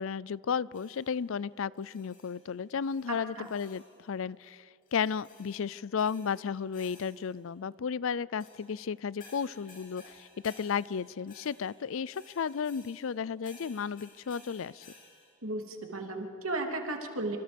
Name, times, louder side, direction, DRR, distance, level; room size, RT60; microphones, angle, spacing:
voice 1, 0.0-14.9, left 6 dB, 70° left, 22 dB, 0.5 m, -34 dB
sound 1, 0.7-1.3 1.8-2.6 2.8-4.0 4.9-7.5 8.4-15.3, left 3 dB, 45° left, 7.6 m, -57 dB
voice 2, 3.1-3.5 15.4-17.4, right 2 dB, 75° right, 3 dB, 2.9 m, -35 dB
27.0 x 26.5 x 5.3 m, 2.5 s
head